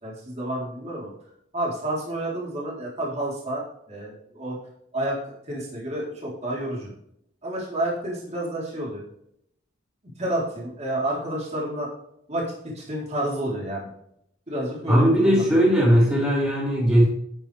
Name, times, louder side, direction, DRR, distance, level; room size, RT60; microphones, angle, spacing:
voice 1, 0.0-1.1 1.5-4.6 4.9-6.9 7.4-9.0 10.2-11.9 12.3-13.9 14.5-15.4, right 1 dB, 35° right, -4 dB, 3.9 m, -30 dB
voice 2, 14.9-17.0, equal, 15° right, -9 dB, 5.0 m, -18 dB
12.5 x 9.9 x 3.5 m, 0.73 s
head